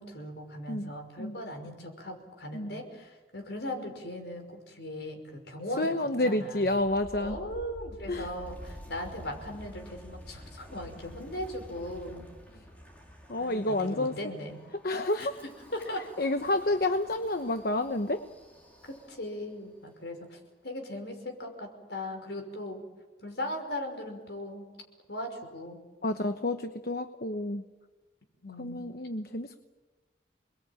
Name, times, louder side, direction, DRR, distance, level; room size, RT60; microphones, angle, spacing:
voice 1, 0.0-6.0 6.2-6.7 7.2-12.2 13.4-14.6 15.2-15.3 15.7-16.1 18.9-22.8 23.2-24.7 25.1-25.8 28.4-28.9, left 1 dB, 75° left, 4 dB, 5.8 m, -38 dB
voice 2, 5.8-7.4 8.1-8.3 13.3-14.1 14.8-15.3 16.2-18.2 26.0-27.6 28.6-29.6, left 2 dB, 55° left, 7 dB, 1.0 m, -29 dB
Wind, 6.5-19.5, equal, 10° left, 4.8 m, -49 dB
28.5 x 21.5 x 9.0 m, 1.2 s
head